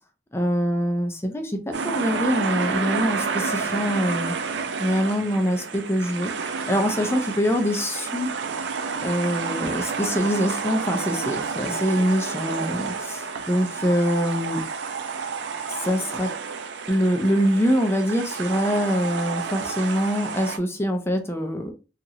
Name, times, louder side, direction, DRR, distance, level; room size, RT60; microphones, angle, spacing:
voice 1, 0.3-4.3 4.8-6.3 6.7-8.3 9.0-14.6 15.7-16.3 16.9-21.7, equal, 15° left, 5 dB, 0.5 m, -24 dB
sound 1, 1.7-20.6, right 5 dB, 90° right, 0.4 m, -30 dB
2.9 x 2.4 x 2.7 m, 0.31 s
head